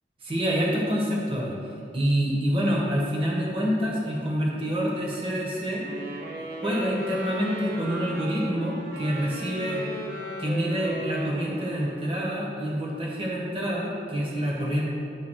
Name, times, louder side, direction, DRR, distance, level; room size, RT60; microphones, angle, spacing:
voice 1, 0.2-1.5 1.9-5.8 6.6-9.8 10.4-14.9, equal, 30° right, -3 dB, 1.2 m, -27 dB
Wind instrument woodwind instrument, 5.8-12.3, right 1 dB, 55° right, 1.1 m, -36 dB
10.5 x 3.5 x 6.2 m, 2.7 s
head